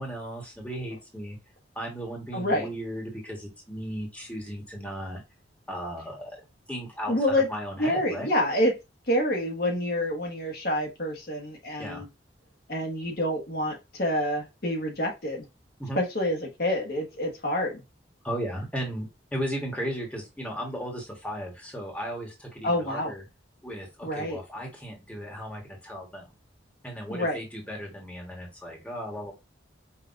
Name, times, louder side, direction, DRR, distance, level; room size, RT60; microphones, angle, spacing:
voice 1, 0.0-1.4 1.7-5.2 5.7-6.4 6.7-8.3 11.8-12.0 15.8-16.0 18.2-23.2 23.6-26.3 26.8-29.3, equal, 10° left, -1 dB, 1.3 m, -36 dB
voice 2, 2.3-2.7 7.1-7.5 7.8-8.7 9.1-12.1 12.7-15.5 16.0-17.8 22.6-23.1 24.0-24.4 27.1-27.4, left 1 dB, 55° left, 1 dB, 1.2 m, -27 dB
5.4 x 2.6 x 2.6 m, 0.24 s
head